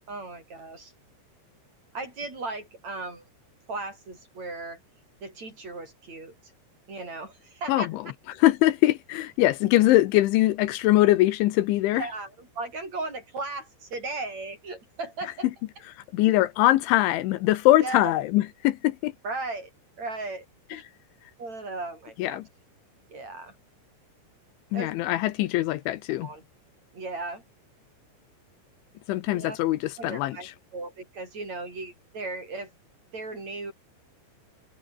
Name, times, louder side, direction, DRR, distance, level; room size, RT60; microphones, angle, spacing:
voice 1, 0.1-0.9 1.9-3.2 3.7-4.8 5.2-6.3 6.9-7.9 11.9-15.5 17.8-18.1 19.2-19.7 20.0-20.4 20.7-20.8 21.4-22.4 23.1-23.5 24.7-24.9 25.4-25.5 26.2-26.4 26.9-27.4 29.3-29.6 30.0-30.5 30.7-32.7 33.1-33.7, right 3 dB, 35° right, 8.4 m, -36 dB
voice 2, 7.7-8.0 8.3-12.1 16.1-19.1 20.7-20.8 22.2-22.4 24.7-26.3 29.1-30.5, left 16 dB, 80° left, 3.3 m, -22 dB
omnidirectional pair, 5.5 m